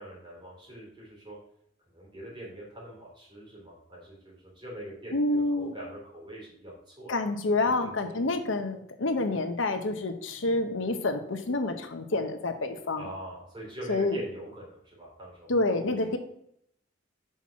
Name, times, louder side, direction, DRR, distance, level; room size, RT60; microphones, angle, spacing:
voice 1, 0.0-1.4 1.9-7.2 7.6-8.3 13.0-15.5, right 1 dB, 25° right, -5 dB, 3.3 m, -43 dB
voice 2, 5.1-5.7 7.1-13.0 13.9-14.2 15.5-16.2, left 2 dB, 75° left, 7 dB, 0.8 m, -28 dB
5.8 x 4.5 x 5.8 m, 0.70 s
head